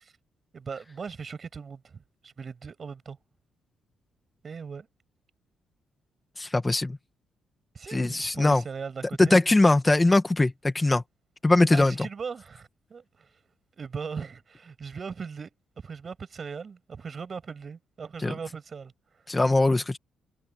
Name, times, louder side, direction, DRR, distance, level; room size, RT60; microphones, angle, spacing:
voice 1, 0.5-3.2 4.4-4.9 7.7-9.4 11.7-13.4 13.8-19.2, right 5 dB, 40° right, 6.3 m, -39 dB
voice 2, 6.4-7.0 7.9-8.6 9.2-11.0 11.4-11.9 18.2-18.3 19.3-20.0, left 2 dB, 15° left, 1.4 m, -21 dB
cardioid pair, 90°, 0 cm